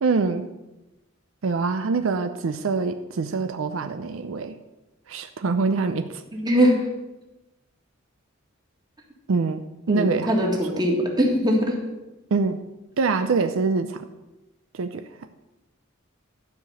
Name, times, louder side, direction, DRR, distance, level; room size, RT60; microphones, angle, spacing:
voice 1, 0.0-0.5 1.4-4.5 5.1-6.2 9.3-10.3 12.3-12.6 13.0-14.1 14.7-15.1, right 4 dB, 75° right, 9 dB, 0.5 m, -24 dB
voice 2, 6.3-6.8 9.9-11.8, equal, 20° right, 0 dB, 1.9 m, -21 dB
12.0 x 4.9 x 7.0 m, 1.0 s
head